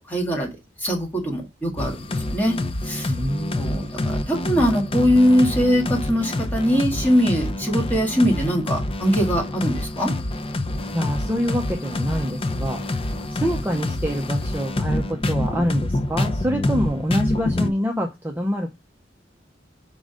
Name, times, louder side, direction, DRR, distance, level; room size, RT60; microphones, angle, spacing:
voice 1, 0.1-0.5 0.8-2.6 2.9-3.1 3.6-10.1, equal, 10° left, -1 dB, 1.9 m, -21 dB
sound 1, 1.8-17.7, left 1 dB, 30° left, 0.6 m, -27 dB
voice 2, 3.1-3.9 10.9-13.0 13.3-18.7, equal, 10° right, 2 dB, 0.7 m, -26 dB
5.3 x 3.8 x 5.0 m, 0.22 s
head